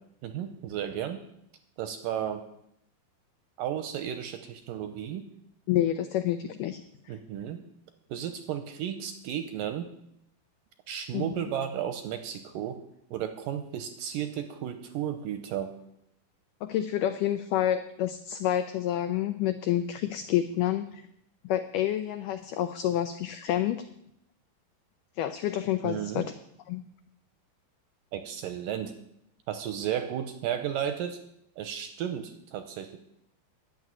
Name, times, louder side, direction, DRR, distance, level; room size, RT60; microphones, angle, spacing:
voice 1, 0.2-1.2 1.8-2.4 3.6-5.3 7.1-7.6 8.1-9.9 10.9-12.8 13.1-15.7 25.8-26.3 28.1-28.9 29.5-31.2 31.6-33.0, right 10 dB, 80° right, 7 dB, 2.1 m, -33 dB
voice 2, 5.7-6.8 11.1-11.3 16.6-21.0 21.4-23.8 25.2-26.3 26.7-26.9, left 11 dB, 90° left, 9 dB, 1.8 m, -28 dB
11.0 x 7.3 x 9.5 m, 0.76 s
omnidirectional pair, 4.5 m